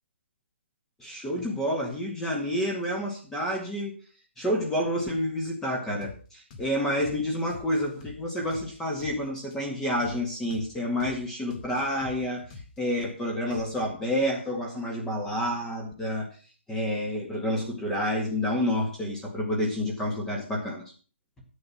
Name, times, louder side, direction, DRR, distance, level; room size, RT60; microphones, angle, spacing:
voice 1, 1.0-3.9 4.4-12.4 12.8-16.3 16.7-20.8, equal, 5° left, 0 dB, 2.0 m, -29 dB
sound 1, 6.0-6.2 6.5-6.7 7.0-7.2 7.5-9.2 9.5-9.6 10.0-10.2 10.5-10.7 11.0-11.2 11.5-13.0 13.5-13.9, left 4 dB, 35° left, 2.2 m, -45 dB
11.0 x 8.0 x 6.0 m, 0.39 s
hypercardioid pair, 150°, 7 cm